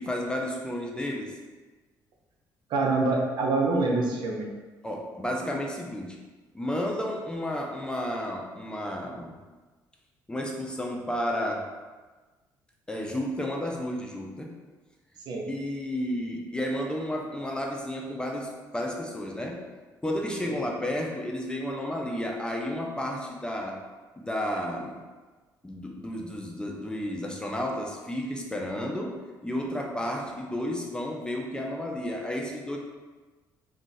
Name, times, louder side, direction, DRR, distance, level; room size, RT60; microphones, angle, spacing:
voice 1, 0.0-1.4 4.8-6.2 6.5-9.3 10.3-11.7 12.9-14.5 15.5-19.7 20.0-23.8 24.2-25.0 25.6-32.8, left 1 dB, 10° left, 0 dB, 0.6 m, -32 dB
voice 2, 2.7-4.5 15.3-15.5, right 3 dB, 65° right, 0 dB, 0.6 m, -25 dB
2.4 x 2.4 x 3.9 m, 1.3 s
supercardioid pair, 70°, 8 cm